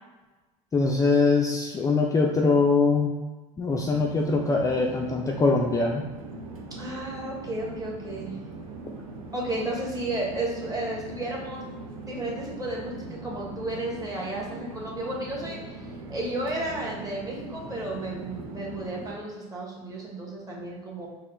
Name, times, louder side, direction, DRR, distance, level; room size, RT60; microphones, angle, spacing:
voice 1, 0.7-3.1 3.6-6.0, left 4 dB, 20° left, 0 dB, 0.4 m, -22 dB
Chatter / Fixed-wing aircraft airplane, 3.7-19.1, right 2 dB, 90° right, 0.6 m, -41 dB
voice 2, 6.7-8.4 9.3-11.6 12.0-15.8 16.1-21.1, right 1 dB, 20° right, -3 dB, 1.3 m, -33 dB
4.3 x 2.1 x 3.7 m, 1.2 s
hypercardioid pair, 80°, 17 cm